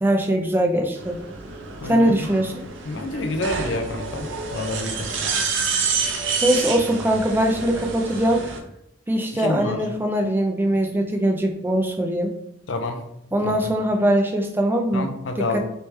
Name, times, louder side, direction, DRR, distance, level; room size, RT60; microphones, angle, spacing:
voice 1, 0.0-1.2 1.8-2.5 6.4-8.5 9.1-12.3 13.3-15.6, right 1 dB, 10° right, 3 dB, 0.4 m, -21 dB
sound 1, 1.0-8.6, right 5 dB, 85° right, 0.6 m, -28 dB
voice 2, 1.8-2.1 2.9-5.1 9.4-9.8 12.7-13.0 14.9-15.6, left 2 dB, 75° left, 5 dB, 0.5 m, -28 dB
3.1 x 3.0 x 3.3 m, 0.82 s
head